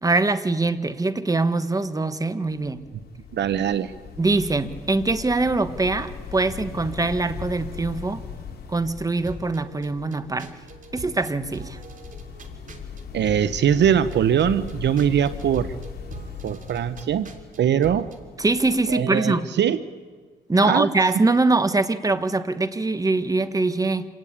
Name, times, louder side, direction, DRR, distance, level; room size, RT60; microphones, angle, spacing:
voice 1, 0.0-2.8 4.2-8.2 8.7-10.5 10.9-11.8 18.4-19.4 20.5-24.1, right 3 dB, 20° right, 12 dB, 1.5 m, -23 dB
sound 1, 2.5-19.0, left 6 dB, 55° left, 4.3 m, -39 dB
voice 2, 3.3-3.9 13.1-15.8 16.4-17.3 17.6-18.1 18.9-19.8 20.6-20.9, right 9 dB, 60° right, 14 dB, 0.9 m, -21 dB
sound 2, 9.3-18.2, right 3 dB, 40° right, 3.2 m, -43 dB
27.0 x 18.5 x 8.9 m, 1.6 s
cardioid pair, 90°, 20 cm